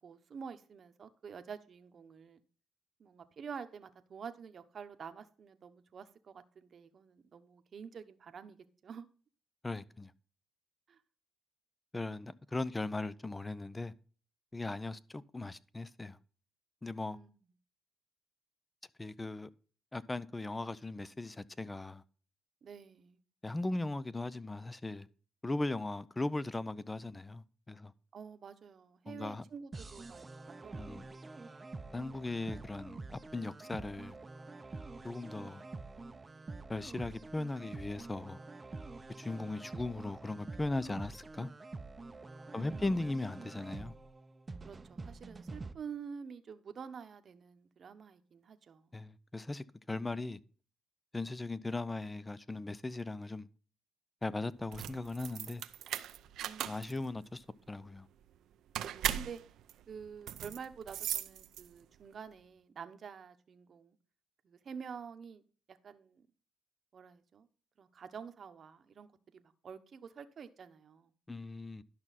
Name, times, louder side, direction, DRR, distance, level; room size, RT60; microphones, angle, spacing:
voice 1, 0.0-2.4 3.0-9.1 10.9-11.0 17.1-17.4 22.6-23.2 28.1-31.4 42.5-43.7 44.6-48.9 56.4-57.1 58.8-59.4 59.9-64.0 64.4-65.4 65.7-66.3 66.9-67.5 67.8-71.1, right 6 dB, 50° right, 1.0 m, -48 dB
voice 2, 9.6-10.1 11.9-13.9 14.5-16.2 16.8-17.2 19.0-19.5 19.9-22.0 23.4-25.1 25.4-27.9 29.1-29.4 30.8-31.0 31.9-34.2 35.0-35.6 36.7-38.4 39.2-41.5 42.5-43.9 48.9-50.4 51.1-53.5 54.2-55.6 56.6-58.1 71.3-71.8, left 2 dB, 15° left, 0.6 m, -38 dB
sound 1, 29.7-45.7, right 3 dB, 25° right, 0.7 m, -47 dB
sound 2, 54.6-62.0, right 11 dB, 80° right, 0.6 m, -39 dB
11.0 x 6.1 x 4.1 m
cardioid pair, 90°, 0 cm